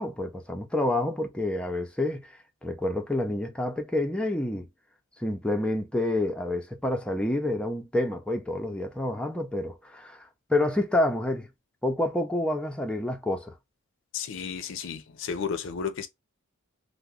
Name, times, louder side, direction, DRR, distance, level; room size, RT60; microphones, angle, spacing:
voice 1, 0.0-4.7 5.2-11.5 11.8-13.5, left 1 dB, 5° left, 0.4 m, -28 dB
voice 2, 14.1-16.1, left 6 dB, 65° left, 0.5 m, -33 dB
2.9 x 2.0 x 3.6 m
head